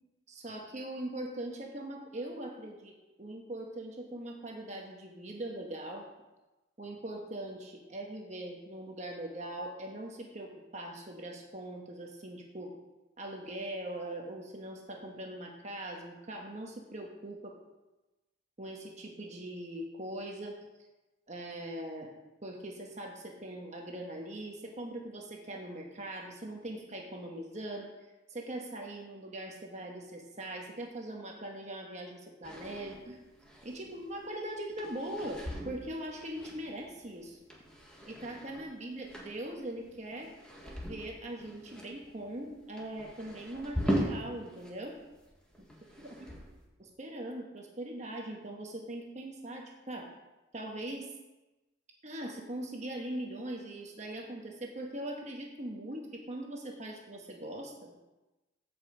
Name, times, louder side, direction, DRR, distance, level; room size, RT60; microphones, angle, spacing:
voice 1, 0.3-2.9 3.2-6.0 6.8-12.7 13.2-17.5 18.6-20.6 21.3-22.1 22.4-27.9 28.3-33.2 33.6-37.4 38.1-40.3 40.9-45.0 46.8-50.1 50.5-51.1 52.0-58.0, right 1 dB, 35° right, 0 dB, 1.2 m, -41 dB
sound 1, 32.4-44.7 45.0-46.6, equal, 5° left, 1.5 m, -40 dB
14.5 x 5.4 x 5.0 m, 1.1 s
head